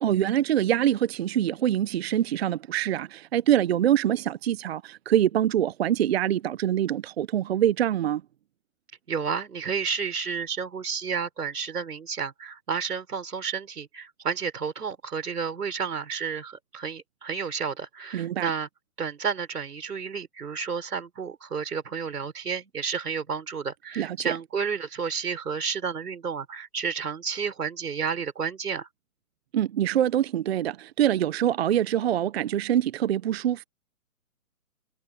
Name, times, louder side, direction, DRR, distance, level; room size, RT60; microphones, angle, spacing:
voice 1, 0.0-8.2 18.1-18.5 23.9-24.4 29.5-33.6, right 11 dB, 45° right, 0.6 m, -24 dB
voice 2, 9.1-18.7 19.0-28.9, right 6 dB, 85° right, 5.8 m, -31 dB
hypercardioid pair, 150°, 45 cm